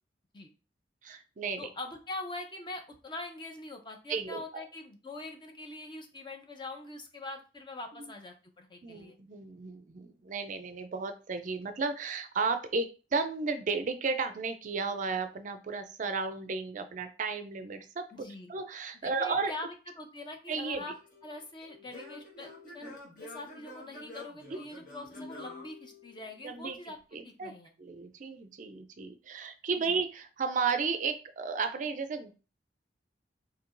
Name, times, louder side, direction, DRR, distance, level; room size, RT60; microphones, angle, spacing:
voice 1, 1.0-1.7 4.1-4.6 8.8-19.5 20.5-20.8 22.8-22.9 24.5-24.6 26.4-26.8 27.1-27.5 27.8-32.3, right 4 dB, 45° right, 8 dB, 0.4 m, -34 dB
voice 2, 1.6-9.2 18.1-18.5 19.0-20.9 21.2-27.0 27.2-27.7 29.7-30.0, left 2 dB, 25° left, 4 dB, 0.6 m, -43 dB
Singing / Plucked string instrument, 20.6-26.5, left 2 dB, 50° left, 1.3 m, -48 dB
4.5 x 2.7 x 2.5 m, 0.33 s
head